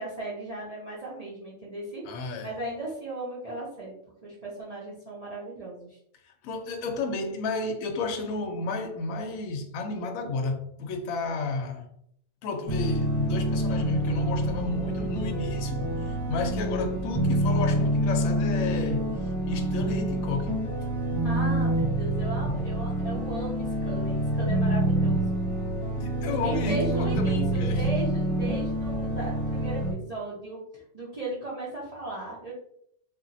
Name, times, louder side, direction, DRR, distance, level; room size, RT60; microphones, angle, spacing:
voice 1, 0.0-3.9 4.2-6.0 21.2-25.4 26.4-32.5, right 2 dB, 50° right, 0.4 m, -36 dB
voice 2, 2.0-2.5 6.2-11.9 12.4-19.1 19.5-20.6 26.0-27.9, left 3 dB, 70° left, 0.9 m, -32 dB
sound 1, 12.7-29.9, right 1 dB, 15° left, 1.2 m, -27 dB
2.9 x 2.5 x 2.6 m
omnidirectional pair, 1.5 m